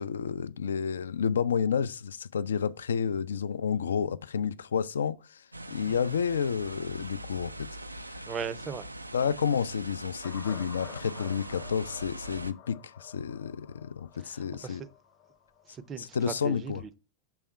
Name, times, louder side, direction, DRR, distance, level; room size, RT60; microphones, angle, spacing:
voice 1, 0.0-7.7 8.0-8.3 9.1-14.8 16.0-16.8, left 7 dB, 65° left, 0.3 m, -30 dB
sound 1, 5.5-12.5, right 1 dB, 85° right, 0.3 m, -42 dB
voice 2, 8.2-8.9 9.2-9.3 14.2-14.9 15.7-16.9, right 6 dB, 25° right, 0.5 m, -39 dB
sound 2, 10.2-15.8, left 10 dB, 45° left, 0.7 m, -50 dB
6.2 x 3.4 x 4.5 m
figure-of-eight pair, 90°, 0 cm